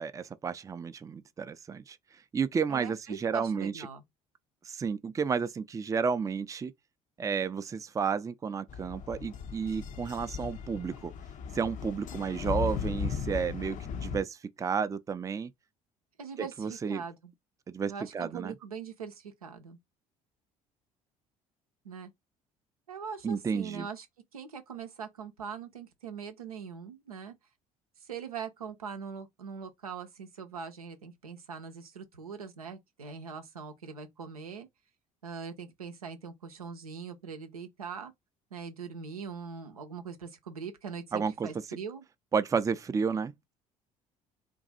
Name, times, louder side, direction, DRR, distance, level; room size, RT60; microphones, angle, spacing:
voice 1, 0.0-2.0 2.3-3.9 4.6-6.7 7.2-11.1 11.5-15.5 16.6-17.0 17.7-18.5 23.2-23.9 41.1-41.5 42.3-43.5, right 6 dB, 20° right, 0.4 m, -32 dB
voice 2, 2.7-4.0 16.2-17.3 17.9-19.8 21.8-22.1 22.9-24.1 24.3-27.3 28.0-34.7 35.2-38.1 38.5-42.0, right 6 dB, 85° right, 0.6 m, -42 dB
sound 1, 8.7-14.2, left 6 dB, 45° left, 0.6 m, -37 dB
2.6 x 2.3 x 4.0 m
figure-of-eight pair, 55°, 18 cm